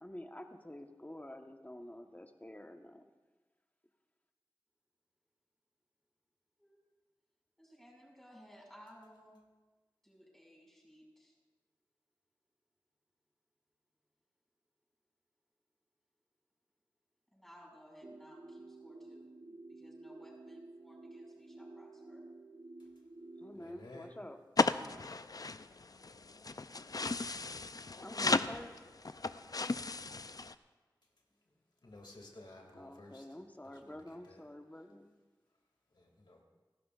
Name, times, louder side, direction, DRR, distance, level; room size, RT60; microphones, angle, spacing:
voice 1, 0.0-3.0 23.4-24.4 28.0-28.8 32.7-35.1, left 1 dB, 20° left, 1.2 m, -48 dB
voice 2, 7.6-9.4 10.0-11.3 17.3-22.3, equal, 5° left, 5.6 m, -58 dB
sound 1, 18.0-23.8, right 2 dB, 50° right, 0.9 m, -52 dB
voice 3, 23.6-24.1 25.1-25.2 31.8-33.2 33.7-34.4 36.0-36.4, left 2 dB, 75° left, 2.4 m, -54 dB
sound 2, 24.6-30.5, left 3 dB, 50° left, 0.5 m, -35 dB
29.5 x 12.0 x 2.5 m
wide cardioid pair, 55°, 8 cm